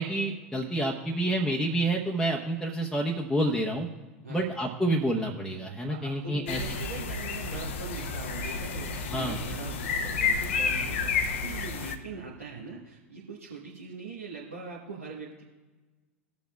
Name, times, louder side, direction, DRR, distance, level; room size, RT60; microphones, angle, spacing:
voice 1, 0.0-3.9 4.3-6.6 9.1-9.4, right 1 dB, 5° left, -3 dB, 0.9 m, -28 dB
voice 2, 5.9-15.4, right 4 dB, 85° right, -6 dB, 1.2 m, -42 dB
sound 1, 6.5-11.9, left 5 dB, 60° left, 0.8 m, -30 dB
19.0 x 7.1 x 2.3 m, 1.3 s
figure-of-eight pair, 85°, 7 cm